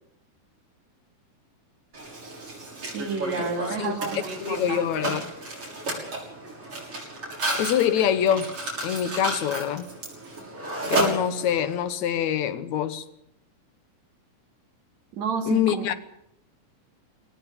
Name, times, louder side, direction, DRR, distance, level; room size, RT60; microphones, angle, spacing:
Mechanisms, 1.9-11.7, right 2 dB, 45° right, 7.3 m, -32 dB
voice 1, 2.9-5.2 15.1-15.9, right 5 dB, 60° right, 3.9 m, -31 dB
voice 2, 4.4-5.2 7.5-8.6 8.8-9.9 10.9-13.1 15.5-16.0, left 9 dB, 70° left, 2.3 m, -25 dB
23.0 x 18.0 x 7.1 m
omnidirectional pair, 3.6 m